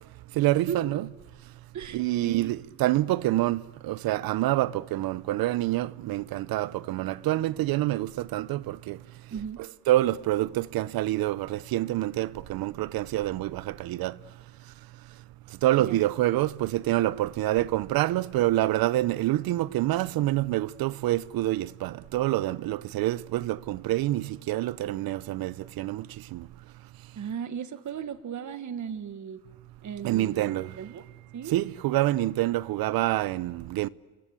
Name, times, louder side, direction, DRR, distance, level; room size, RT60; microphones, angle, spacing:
voice 1, 0.4-1.1 1.9-9.0 9.9-14.1 15.6-26.1 26.3-26.5 30.0-30.7 31.5-33.9, right 15 dB, 80° right, 0.8 m, -27 dB
voice 2, 1.7-2.5 9.3-9.6 15.8-16.0 27.2-29.4 29.8-31.1 31.3-31.5, right 8 dB, 55° right, 1.8 m, -36 dB
28.5 x 22.5 x 8.4 m
cardioid pair, 80°, 35 cm